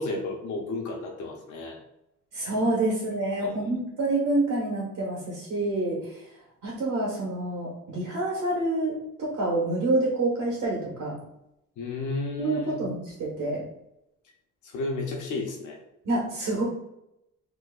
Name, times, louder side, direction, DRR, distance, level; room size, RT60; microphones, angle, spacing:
voice 1, 0.0-1.8 3.4-3.6 11.8-12.8 14.6-15.8, left 3 dB, 75° left, 0 dB, 0.7 m, -32 dB
voice 2, 2.3-6.2 6.6-11.2 12.4-13.6 16.0-16.6, right 2 dB, 85° right, -5 dB, 1.3 m, -27 dB
3.0 x 2.3 x 3.6 m, 0.84 s
cardioid pair, 90°, 30 cm